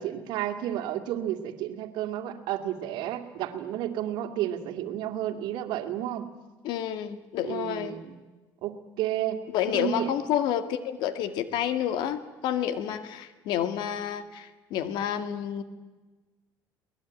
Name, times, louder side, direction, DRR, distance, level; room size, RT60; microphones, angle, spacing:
voice 1, 0.0-6.3 7.4-8.2 8.6-9.4 9.7-10.1, right 12 dB, 75° right, 7 dB, 2.2 m, -31 dB
voice 2, 6.6-8.0 9.5-15.6, left 10 dB, 75° left, 11 dB, 2.0 m, -29 dB
22.5 x 19.5 x 9.1 m, 1.2 s
cardioid pair, 100°, 8 cm